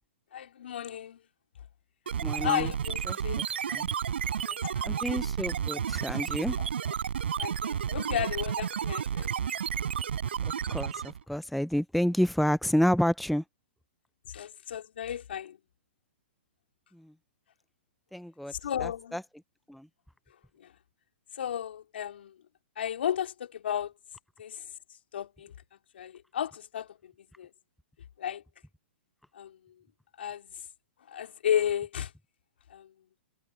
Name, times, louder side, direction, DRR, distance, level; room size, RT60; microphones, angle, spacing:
voice 1, 0.3-1.2 2.1-3.4 4.4-5.0 6.6-6.7 7.4-9.3 14.3-15.6 18.5-19.2 20.6-20.7 21.3-22.4 22.8-23.9 24.4-24.7 25.1-25.6 25.9-27.1 27.4-27.5 28.2-28.4 29.3-29.7 30.2-30.6 31.1-32.1 32.7-32.9, left 9 dB, 65° left, 3.2 m, -34 dB
sound 1, 2.1-11.2, right 8 dB, 70° right, 4.7 m, -31 dB
voice 2, 2.2-2.7 3.1-3.9 4.8-6.6 10.7-13.4 16.9-17.1 18.1-18.5 18.8-19.2 19.7-19.9, equal, ahead, 0.7 m, -29 dB
hypercardioid pair, 115°, 6 cm